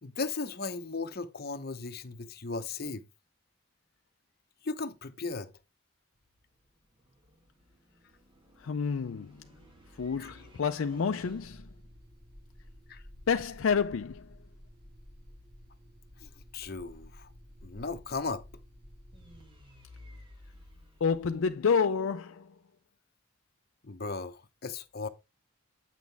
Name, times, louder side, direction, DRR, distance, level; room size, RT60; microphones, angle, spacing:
voice 1, 0.0-3.1 4.6-5.5 10.2-10.3 12.9-13.0 16.2-17.3 17.6-18.4 23.8-25.1, left 4 dB, 45° left, 0.8 m, -36 dB
sound 1, 6.1-22.1, equal, 25° right, 1.3 m, -53 dB
voice 2, 8.6-9.4 10.0-11.7 13.3-14.3 21.0-22.5, left 6 dB, 75° left, 0.4 m, -29 dB
8.2 x 6.2 x 3.3 m
head